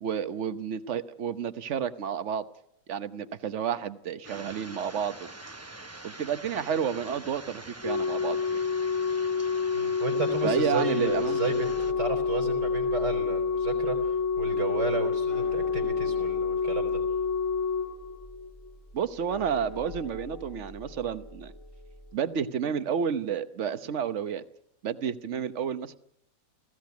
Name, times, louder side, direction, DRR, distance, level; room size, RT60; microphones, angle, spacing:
voice 1, 0.0-2.4 2.9-5.3 6.0-8.6 10.4-11.4 18.9-21.5 22.1-24.4 24.8-26.0, right 7 dB, 50° right, 12 dB, 1.1 m, -31 dB
sound 1, 4.2-11.9, right 2 dB, 25° right, 0.3 m, -45 dB
Organ, 7.8-18.7 19.8-20.0, left 5 dB, 50° left, 1.2 m, -28 dB
voice 2, 9.7-17.0, right 4 dB, 75° right, 5 dB, 4.8 m, -32 dB
sound 2, 11.6-22.2, left 2 dB, 25° left, 0.9 m, -45 dB
19.5 x 15.5 x 9.4 m, 0.77 s
omnidirectional pair, 1.9 m